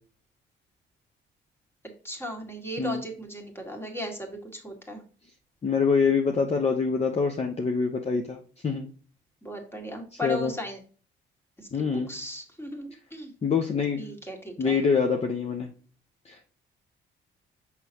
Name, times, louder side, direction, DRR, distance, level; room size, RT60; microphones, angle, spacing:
voice 1, 2.0-5.0 9.4-10.8 11.6-13.3 14.0-14.8, equal, 10° left, 2 dB, 1.9 m, -36 dB
voice 2, 5.6-8.9 10.2-10.5 11.7-12.1 13.4-14.1 14.6-15.7 16.3-16.4, left 5 dB, 30° left, 3 dB, 0.8 m, -25 dB
6.1 x 5.7 x 2.9 m, 0.39 s
cardioid pair, 90°, 20 cm